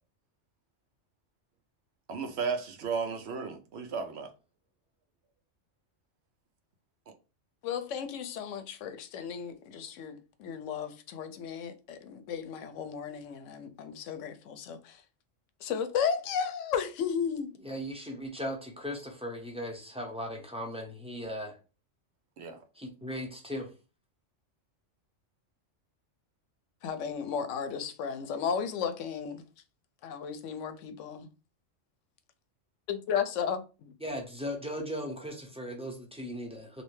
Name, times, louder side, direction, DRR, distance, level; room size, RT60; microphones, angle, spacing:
voice 1, 2.1-4.3 22.4-22.6, right 5 dB, 65° right, 0.8 m, -34 dB
voice 2, 7.6-15.0 15.6-17.5 26.8-29.4 30.0-31.3 32.9-33.9, left 7 dB, 85° left, 0.9 m, -34 dB
voice 3, 17.6-21.5 22.7-23.7 34.0-36.8, equal, 5° right, 0.6 m, -38 dB
3.1 x 2.7 x 3.1 m
omnidirectional pair, 1.2 m